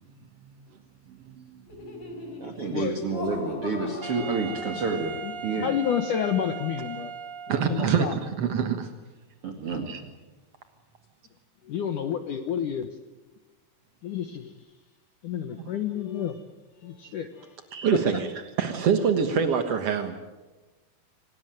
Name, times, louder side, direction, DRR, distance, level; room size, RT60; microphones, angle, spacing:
voice 1, 1.1-2.0 7.5-8.9 9.7-10.0 17.0-17.1 17.7-20.2, right 6 dB, 75° right, 8 dB, 1.4 m, -26 dB
Laughter, 1.7-5.4, left 2 dB, 35° left, 5.1 m, -40 dB
voice 2, 2.4-5.2 5.4-5.7 9.4-9.9, right 3 dB, 40° right, 4 dB, 2.4 m, -29 dB
Wind instrument woodwind instrument, 4.0-7.9, right 6 dB, 60° right, 1.1 m, -38 dB
voice 3, 5.2-7.1 7.5-8.1 11.7-12.9 14.0-14.5 15.2-16.4 16.8-17.5, left 9 dB, 65° left, 8 dB, 2.1 m, -30 dB
26.0 x 19.0 x 9.2 m, 1.2 s
omnidirectional pair, 5.0 m